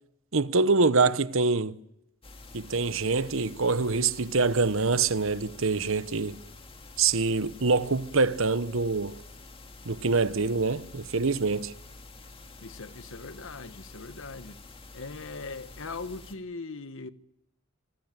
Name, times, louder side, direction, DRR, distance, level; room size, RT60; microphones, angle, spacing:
voice 1, 0.3-1.8 2.5-6.4 7.0-9.2 9.8-11.7, right 4 dB, 65° right, 1.1 m, -25 dB
sound 1, 2.2-16.4, left 3 dB, 25° left, 2.3 m, -48 dB
voice 2, 12.6-14.6 14.9-17.1, left 3 dB, 65° left, 1.3 m, -40 dB
26.0 x 20.0 x 9.1 m
head